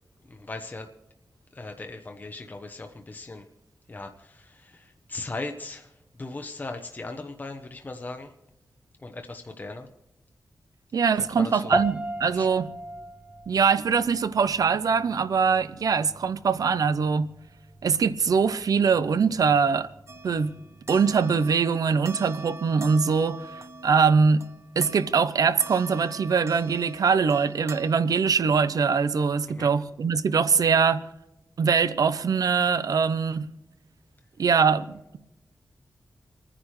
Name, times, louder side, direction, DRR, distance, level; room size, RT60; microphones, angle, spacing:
voice 1, 0.2-0.9 1.5-3.4 3.9-8.3 9.0-9.9 11.1-11.9 12.3-12.5 29.5-29.7, left 2 dB, 30° left, 0.9 m, -38 dB
voice 2, 10.9-12.7 13.5-17.3 17.8-19.9 20.2-20.6 20.9-24.5 24.8-31.0 31.6-33.5 34.4-35.2, right 5 dB, 80° right, 0.7 m, -23 dB
sound 1, 11.7-21.3, right 2 dB, 15° right, 0.8 m, -36 dB
sound 2, 20.1-28.4, right 2 dB, 45° right, 0.9 m, -44 dB
28.5 x 10.0 x 3.2 m
wide cardioid pair, 125°, 6 cm